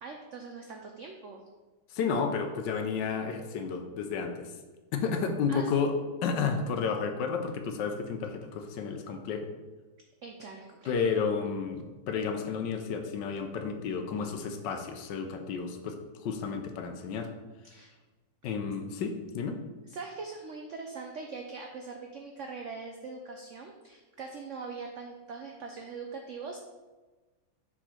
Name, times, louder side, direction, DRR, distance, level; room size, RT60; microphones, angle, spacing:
voice 1, 0.0-1.4 5.5-5.9 10.2-11.0 17.7-17.9 19.9-26.6, right 4 dB, 80° right, 3 dB, 0.6 m, -42 dB
voice 2, 1.9-4.5 4.9-5.9 6.2-9.5 10.9-17.3 18.4-19.6, left 5 dB, 75° left, 6 dB, 1.3 m, -31 dB
5.7 x 4.7 x 4.3 m, 1.2 s
omnidirectional pair, 2.0 m